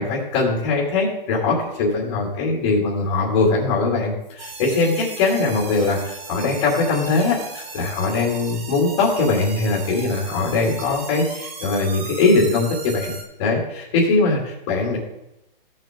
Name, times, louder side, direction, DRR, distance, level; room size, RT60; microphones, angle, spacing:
voice 1, 0.0-13.1 13.4-15.0, left 3 dB, 30° left, -2 dB, 2.6 m, -21 dB
sound 1, 4.4-13.2, right 4 dB, 85° right, 3.0 m, -37 dB
16.0 x 7.6 x 3.8 m, 0.89 s
hypercardioid pair, 165°, 29 cm